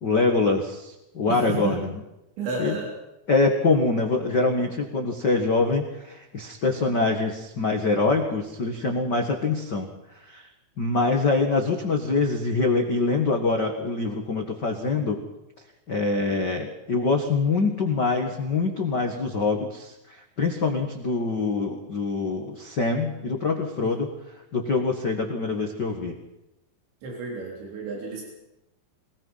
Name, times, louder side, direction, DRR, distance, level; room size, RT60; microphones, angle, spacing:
voice 1, 0.0-1.8 2.6-2.7 3.3-9.9 10.2-10.5 10.8-15.2 15.9-19.9 20.4-24.1 24.5-26.1, left 3 dB, 85° left, 2 dB, 0.9 m, -24 dB
voice 2, 1.3-1.8 2.4-2.9 23.8-23.9 27.0-28.2, right 4 dB, 90° right, -2 dB, 5.9 m, -31 dB
22.5 x 20.0 x 5.7 m, 0.91 s
omnidirectional pair, 5.1 m